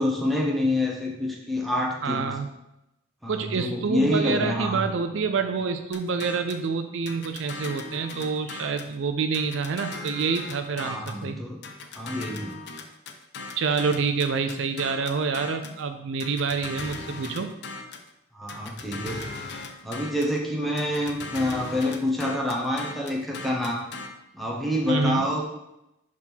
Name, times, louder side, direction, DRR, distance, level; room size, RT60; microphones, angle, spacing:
voice 1, 0.0-2.3 3.2-4.8 10.8-11.6 11.9-12.5 18.3-19.2 19.8-23.8 24.3-25.5, left 1 dB, ahead, -2 dB, 0.9 m, -27 dB
voice 2, 2.0-2.5 3.3-11.4 13.6-17.5 24.9-25.3, right 5 dB, 65° right, 8 dB, 0.4 m, -27 dB
sound 1, 5.9-6.7 7.1-8.9 9.3-11.2 11.6-15.8 16.2-18.1 18.5-20.4 20.8-24.1, left 3 dB, 55° left, 0.5 m, -38 dB
5.9 x 3.6 x 4.5 m, 0.88 s
head